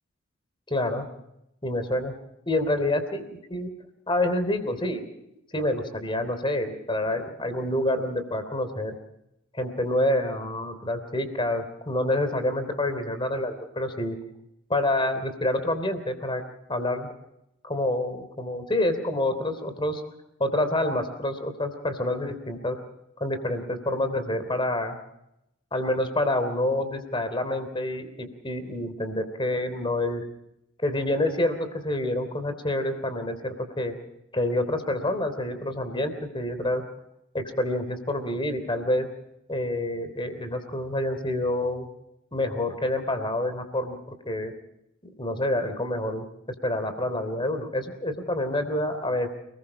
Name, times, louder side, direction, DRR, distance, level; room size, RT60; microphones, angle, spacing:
voice 1, 0.7-1.0 1.6-2.1 2.5-3.7 4.1-5.0 5.5-9.0 9.5-14.2 14.7-16.4 16.7-17.1 17.6-20.0 20.4-22.8 23.2-25.0 25.7-30.2 30.8-33.9 34.3-36.8 37.3-39.1 39.5-41.9 42.3-44.5 45.2-46.2 46.6-49.3, left 1 dB, 25° left, 9 dB, 3.2 m, -27 dB
30.0 x 20.5 x 4.3 m, 0.82 s
head